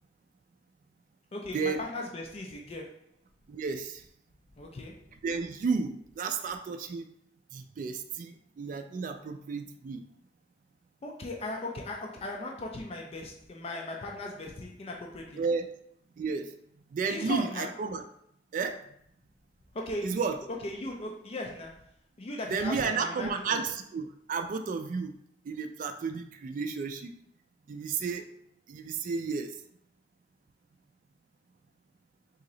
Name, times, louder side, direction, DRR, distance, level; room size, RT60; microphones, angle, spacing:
voice 1, 1.3-3.0 4.6-5.1 11.0-15.4 17.1-17.8 19.7-20.2 20.5-21.9 22.2-23.6, left 2 dB, 35° left, 1 dB, 0.4 m, -38 dB
voice 2, 3.5-4.0 5.2-7.1 7.5-10.0 15.4-15.7 16.2-16.5 16.9-18.0 18.5-18.8 20.0-20.4 22.5-25.1 25.5-27.1 27.7-28.3 28.7-29.5, right 5 dB, 50° right, 6 dB, 0.3 m, -32 dB
3.0 x 2.7 x 3.8 m, 0.71 s
head